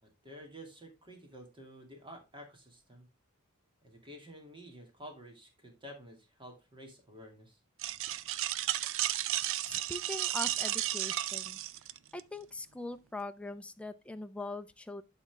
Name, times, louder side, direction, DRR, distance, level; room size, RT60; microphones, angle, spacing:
voice 1, 0.0-3.1 3.8-7.6, equal, 25° right, 2.3 m, -51 dB
sound 1, 7.8-12.2, right 13 dB, 65° right, 0.5 m, -33 dB
voice 2, 9.6-11.6 12.1-15.0, left 2 dB, 5° left, 0.5 m, -42 dB
11.5 x 4.2 x 3.4 m
head